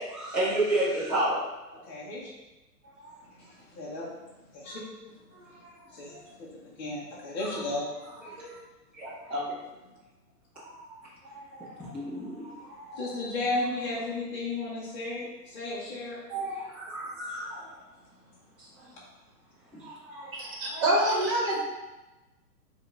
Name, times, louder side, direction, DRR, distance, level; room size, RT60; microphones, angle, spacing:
voice 1, 0.0-1.4 2.8-3.1 5.3-5.8 6.1-6.2 8.3-8.6 9.0-9.6 10.5-11.0 11.2-13.0 16.3-17.8 18.6-18.9 19.7-21.1, right 1 dB, 5° right, -13 dB, 0.7 m, -33 dB
voice 2, 1.7-2.3 3.4-4.1 4.5-5.1 5.4-5.6 5.9-7.9 13.0-16.2, left 2 dB, 25° left, -7 dB, 0.9 m, -34 dB
voice 3, 20.4-21.6, right 1 dB, 30° right, -4 dB, 1.3 m, -26 dB
5.0 x 2.5 x 3.9 m, 1.1 s
hypercardioid pair, 155°, 50 cm